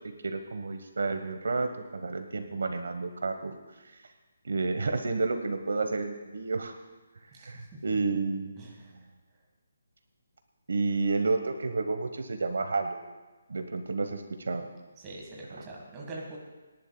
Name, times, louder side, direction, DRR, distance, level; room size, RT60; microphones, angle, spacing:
voice 1, 0.2-4.0 4.4-6.8 7.2-9.0 10.7-13.0 13.5-14.7 15.5-15.6, right 3 dB, 75° right, 6 dB, 1.1 m, -31 dB
voice 2, 7.3-7.8 8.6-8.9 15.0-16.4, right 2 dB, 15° right, -3 dB, 1.6 m, -44 dB
25.5 x 11.0 x 2.3 m, 1.3 s
hypercardioid pair, 170°, 0 cm